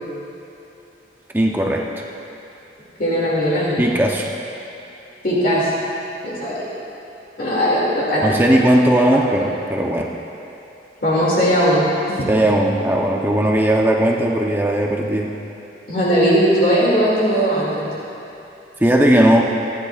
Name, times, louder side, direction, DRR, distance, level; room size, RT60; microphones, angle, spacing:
voice 1, 1.3-1.9 3.8-4.3 8.2-10.1 12.3-15.3 18.8-19.4, right 1 dB, 10° right, -1 dB, 0.7 m, -17 dB
voice 2, 3.0-3.8 5.2-5.7 6.2-6.6 7.4-8.4 11.0-12.2 15.9-17.9, equal, 50° left, -7 dB, 2.4 m, -18 dB
26.0 x 10.5 x 2.4 m, 2.8 s
head